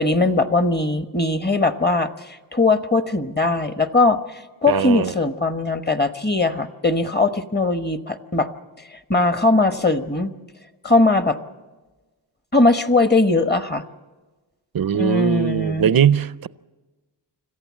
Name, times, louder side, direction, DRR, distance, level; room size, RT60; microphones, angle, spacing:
voice 1, 0.0-8.5 8.9-10.3 10.8-11.4 12.5-13.8 14.9-15.9, left 3 dB, 25° left, 1.2 m, -20 dB
voice 2, 4.7-5.1 14.7-16.5, right 9 dB, 55° right, 0.6 m, -20 dB
26.0 x 15.0 x 7.4 m
wide cardioid pair, 90°, 43 cm